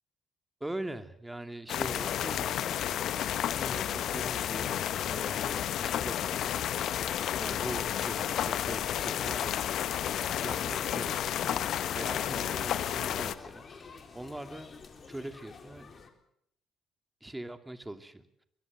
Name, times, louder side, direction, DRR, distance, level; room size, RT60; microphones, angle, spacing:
voice 1, 0.6-2.8 3.5-4.8 5.1-6.6 7.4-9.8 10.3-13.7 14.1-14.7 15.1-16.0 17.2-18.4, right 1 dB, 10° right, 8 dB, 2.8 m, -42 dB
sound 1, 1.7-13.3, left 10 dB, 60° left, 1.0 m, -31 dB
sound 2, 6.4-16.1, left 5 dB, 40° left, 4.0 m, -49 dB
23.0 x 23.0 x 7.8 m, 0.75 s
hypercardioid pair, 45°, 0 cm